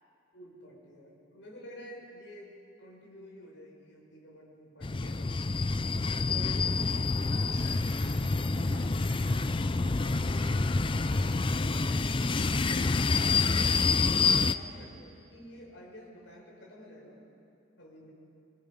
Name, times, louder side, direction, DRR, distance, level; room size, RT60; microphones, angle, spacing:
voice 1, 0.3-2.5 2.8-5.6 6.1-7.4 9.3-12.5 13.2-17.2 17.8-18.1, equal, 80° left, -2 dB, 6.1 m, -50 dB
sound 1, 4.8-14.5, left 3 dB, 25° left, 0.5 m, -27 dB
voice 2, 6.8-9.7, right 1 dB, 45° right, -7 dB, 5.8 m, -53 dB
sound 2, 7.5-9.3, equal, 20° right, 7.1 m, -53 dB
25.5 x 25.0 x 5.3 m, 2.6 s
head